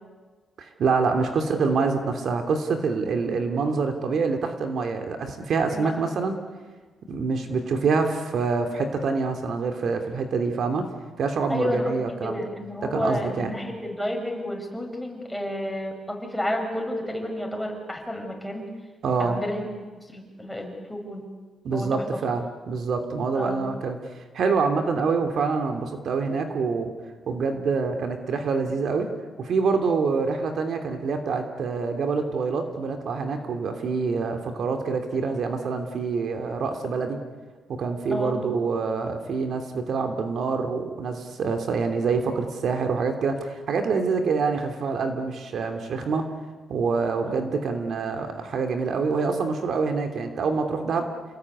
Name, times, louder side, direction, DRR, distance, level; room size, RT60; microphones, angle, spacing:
voice 1, 0.6-6.4 7.1-10.8 11.2-12.4 12.8-13.5 19.0-19.4 21.6-26.9 27.3-29.1 29.4-37.2 37.7-46.3 46.7-51.1, right 4 dB, 65° right, 5 dB, 3.0 m, -26 dB
voice 2, 11.5-18.7 19.2-19.6 20.1-21.3 21.7-22.0 23.3-23.7 38.1-38.5 47.3-47.4, left 1 dB, 5° left, 1 dB, 6.9 m, -31 dB
29.5 x 20.0 x 9.8 m, 1.4 s
cardioid pair, 100°, 0 cm